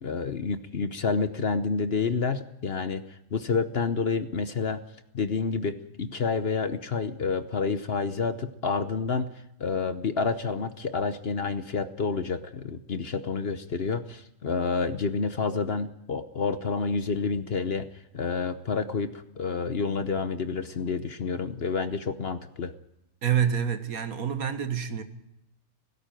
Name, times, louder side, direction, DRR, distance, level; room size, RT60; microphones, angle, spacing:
voice 1, 0.0-3.0 3.3-4.8 5.1-9.3 9.6-17.9 18.1-22.7, left 5 dB, 45° left, 1.0 m, -29 dB
voice 2, 23.2-25.0, right 8 dB, 70° right, 1.8 m, -27 dB
17.5 x 16.5 x 9.1 m
omnidirectional pair, 1.6 m